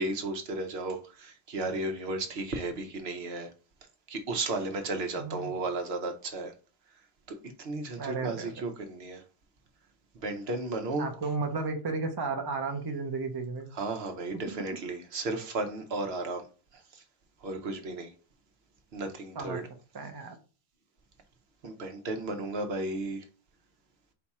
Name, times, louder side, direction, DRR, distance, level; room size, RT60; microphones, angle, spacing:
voice 1, 0.0-3.5 4.1-6.5 7.6-9.2 10.1-11.1 13.7-16.5 16.7-17.0 17.4-18.1 18.9-19.6 21.6-23.2, right 2 dB, 75° right, 1.0 m, -34 dB
voice 2, 5.2-5.6 8.0-8.5 11.0-13.7 14.7-14.8 19.3-19.6 19.9-20.4, right 4 dB, 25° right, 0.6 m, -33 dB
4.6 x 2.3 x 4.1 m
omnidirectional pair, 1.1 m